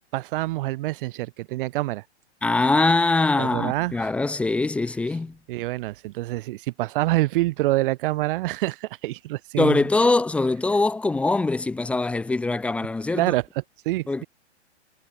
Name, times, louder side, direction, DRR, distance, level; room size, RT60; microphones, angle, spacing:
voice 1, 0.1-2.0 3.4-4.1 5.5-9.9 13.1-14.3, right 18 dB, 50° right, 3.9 m, -26 dB
voice 2, 2.4-5.4 9.6-13.3 14.1-14.2, left 3 dB, 5° left, 0.4 m, -22 dB
hypercardioid pair, 120°, 35 cm